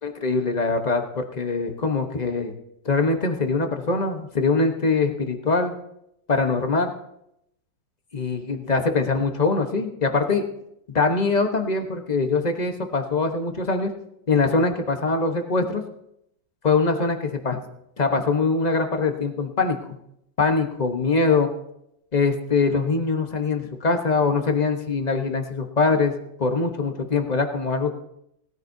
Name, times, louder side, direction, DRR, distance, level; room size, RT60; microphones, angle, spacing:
voice 1, 0.0-2.5 2.8-5.7 6.3-6.9 8.1-10.4 10.9-13.9 14.3-15.8 16.6-17.6 18.0-19.8 20.4-21.5 22.1-26.1 26.4-27.9, left 4 dB, 30° left, 5 dB, 0.9 m, -23 dB
19.5 x 14.0 x 2.7 m, 0.79 s
omnidirectional pair, 2.0 m